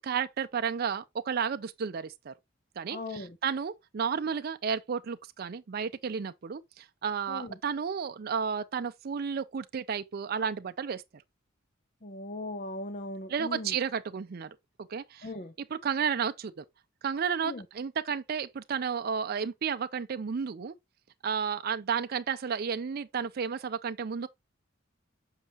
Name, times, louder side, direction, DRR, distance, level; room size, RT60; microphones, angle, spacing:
voice 1, 0.0-2.3 2.8-11.2 13.3-14.5 14.8-15.3 15.7-16.6 17.0-20.7 21.2-24.3, right 6 dB, 50° right, 0.4 m, -32 dB
voice 2, 2.9-3.4 7.3-7.6 12.0-13.8 15.2-15.5 17.4-17.6, left 2 dB, 40° left, 0.7 m, -38 dB
7.3 x 5.5 x 2.9 m
head